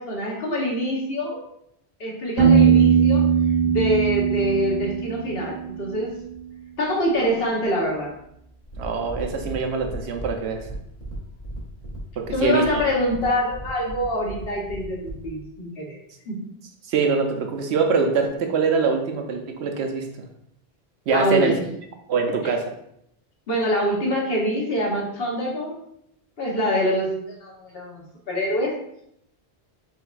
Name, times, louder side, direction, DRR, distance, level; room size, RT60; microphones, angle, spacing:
voice 1, 0.0-1.4 2.0-3.3 3.6-6.1 6.8-8.1 12.3-16.0 16.3-16.4 21.1-21.5 23.5-25.8 26.4-27.1 27.4-28.8, equal, 65° left, -2 dB, 1.2 m, -25 dB
Piano, 2.4-6.1, right 6 dB, 65° right, 1.1 m, -19 dB
sound 1, 8.6-15.3, right 1 dB, 40° left, 1.1 m, -37 dB
voice 2, 8.8-10.6 12.2-12.8 16.9-20.3 21.1-21.5 22.1-22.7, right 5 dB, 90° right, 4 dB, 0.9 m, -23 dB
4.7 x 3.3 x 2.4 m, 0.74 s
omnidirectional pair, 1.1 m